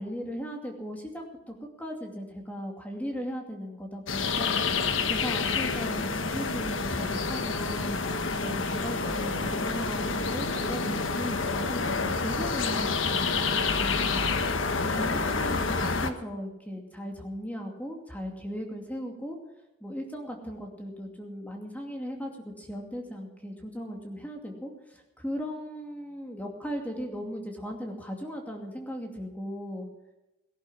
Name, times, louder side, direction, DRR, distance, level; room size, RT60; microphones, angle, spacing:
voice 1, 0.0-4.6 5.1-8.0 8.3-14.3 14.8-19.4 19.8-29.9, equal, 10° left, 1 dB, 2.5 m, -37 dB
sound 1, 4.1-16.1, left 4 dB, 80° left, 1.4 m, -28 dB
18.5 x 11.0 x 6.3 m, 0.97 s
head